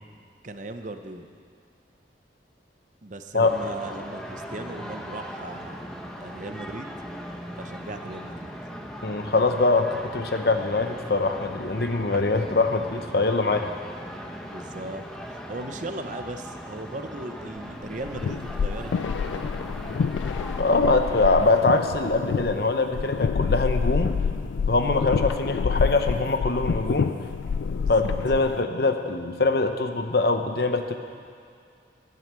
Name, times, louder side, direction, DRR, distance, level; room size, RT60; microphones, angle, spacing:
voice 1, 0.4-1.3 3.0-6.9 7.6-8.5 14.4-19.4 27.8-28.1, right 2 dB, 40° right, 7 dB, 0.8 m, -38 dB
sound 1, 3.4-21.0, equal, 5° left, 0.9 m, -39 dB
voice 2, 9.0-13.7 20.6-24.2 24.7-27.1 27.9-30.9, left 3 dB, 55° left, 6 dB, 0.9 m, -23 dB
sound 2, 17.8-28.6, left 5 dB, 85° left, 0.3 m, -28 dB
12.5 x 10.5 x 7.5 m, 2.3 s
head